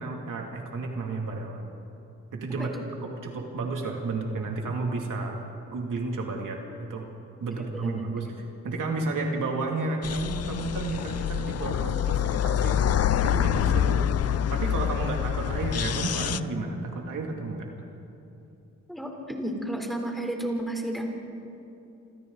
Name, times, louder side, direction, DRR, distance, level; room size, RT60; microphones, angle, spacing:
voice 1, 0.0-1.7 2.3-2.8 3.2-5.4 5.7-6.6 6.9-7.1 7.4-8.3 8.6-17.7, right 3 dB, 80° right, 0 dB, 2.8 m, -32 dB
voice 2, 7.6-8.1 18.9-21.1, right 1 dB, ahead, 1 dB, 3.7 m, -32 dB
sound 1, 10.0-16.4, left 9 dB, 50° left, 0.5 m, -26 dB
27.5 x 27.0 x 4.1 m, 2.8 s
wide cardioid pair, 120°, 31 cm